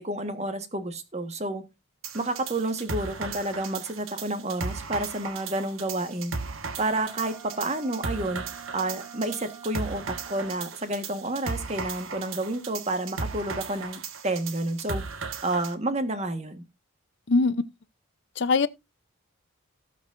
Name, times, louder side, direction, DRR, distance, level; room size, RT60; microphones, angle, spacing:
voice 1, 0.0-1.6 2.1-6.3 6.8-8.4 8.7-15.0 15.4-16.6, right 2 dB, 30° right, 1.4 m, -30 dB
sound 1, 2.0-15.7, right 4 dB, 75° right, 1.4 m, -36 dB
Wind instrument woodwind instrument, 6.8-10.9, right 6 dB, 10° right, 1.9 m, -47 dB
voice 2, 18.4-18.7, left 4 dB, 55° left, 0.6 m, -21 dB
18.0 x 6.2 x 2.5 m
head